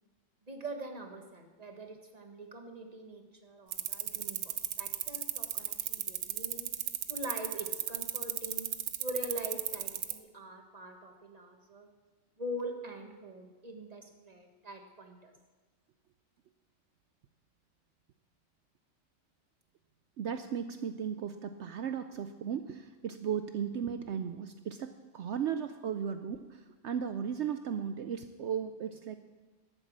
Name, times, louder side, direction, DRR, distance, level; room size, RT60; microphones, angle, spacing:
voice 1, 0.4-6.7 7.1-8.7 9.0-11.9 12.4-15.3, right 1 dB, 30° right, 4 dB, 1.5 m, -43 dB
sound 1, 3.7-10.2, right 11 dB, 85° right, 1.1 m, -34 dB
voice 2, 20.2-29.2, right 8 dB, 65° right, 9 dB, 0.8 m, -36 dB
12.0 x 9.0 x 7.3 m, 1.3 s
omnidirectional pair, 1.4 m